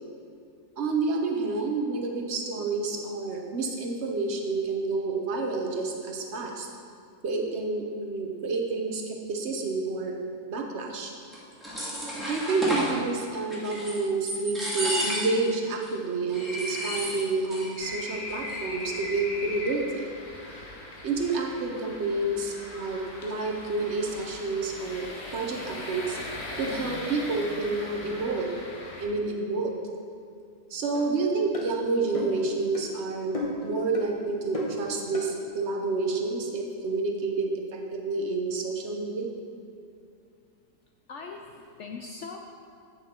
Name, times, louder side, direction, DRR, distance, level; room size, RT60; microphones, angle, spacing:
voice 1, 0.8-6.7 7.2-10.2 10.5-11.1 12.2-20.1 21.0-26.2 26.6-28.5 29.0-29.7 30.7-33.4 33.6-39.3, right 3 dB, 50° right, 1 dB, 1.0 m, -29 dB
sound 1, 11.3-12.9 13.5-14.0 14.3-15.5 15.8-15.9 16.3-17.7 17.9-18.0 18.3-18.8, equal, ahead, 1.7 m, -32 dB
sound 2, 17.8-29.0, left 1 dB, 50° left, 1.5 m, -39 dB
sound 3, 30.9-31.1 31.5-31.7 32.1-32.4 32.7-32.9 33.3-33.7 33.9-34.1 34.5-34.8 35.1-35.3, left 3 dB, 25° left, 1.0 m, -33 dB
voice 2, 41.1-42.4, left 4 dB, 75° left, 2 dB, 0.6 m, -40 dB
8.0 x 6.7 x 4.4 m, 2.4 s
omnidirectional pair, 1.7 m